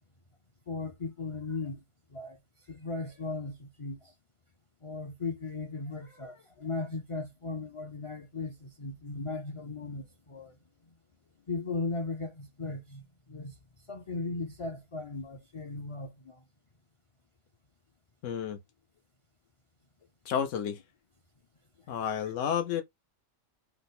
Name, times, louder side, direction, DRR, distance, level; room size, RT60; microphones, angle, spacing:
voice 1, 0.7-1.8 2.1-2.4 2.7-4.1 4.8-10.5 11.5-13.0 13.3-13.5 13.9-16.4 22.2-22.3, left 3 dB, 50° left, 0.4 m, -37 dB
voice 2, 18.2-18.6 20.2-20.8 21.9-22.8, left 8 dB, 85° left, 0.9 m, -31 dB
3.4 x 2.0 x 4.0 m
omnidirectional pair, 1.3 m